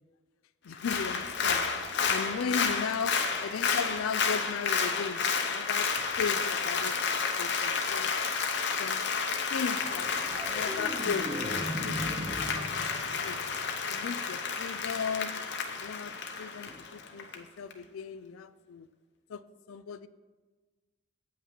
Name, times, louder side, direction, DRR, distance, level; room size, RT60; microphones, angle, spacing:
voice 1, 0.6-1.6 2.1-5.9 6.2-8.1 8.8-9.0 9.5-13.4 13.9-15.4 15.7-18.9 19.3-19.4 19.7-20.1, left 6 dB, 80° left, 14 dB, 0.4 m, -37 dB
Applause, 0.7-17.4 17.7-17.8, left 5 dB, 55° left, 0.8 m, -31 dB
sound 1, 9.8-14.3 16.7-16.8, equal, 15° right, 0.6 m, -39 dB
8.7 x 5.7 x 6.2 m, 1.3 s
head